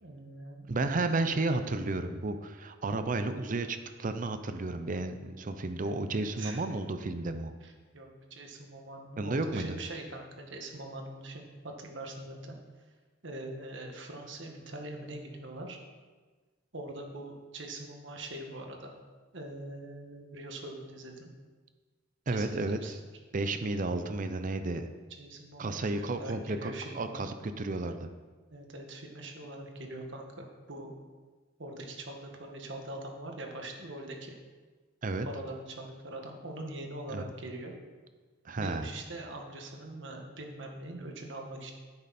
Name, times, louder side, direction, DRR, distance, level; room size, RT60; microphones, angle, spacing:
voice 1, 0.0-0.7 5.8-6.6 7.6-12.5 13.2-15.8 16.7-18.9 19.3-21.3 22.3-22.9 25.2-27.3 28.5-30.9 31.6-34.3 35.2-37.7 38.6-41.7, right 1 dB, 65° right, 2 dB, 1.6 m, -43 dB
voice 2, 0.7-7.5 9.2-9.8 22.3-23.0 23.3-24.9 25.6-28.1 35.0-35.3 37.1-37.2 38.4-38.9, right 2 dB, 45° right, 9 dB, 0.6 m, -32 dB
10.5 x 8.7 x 4.2 m, 1.4 s
head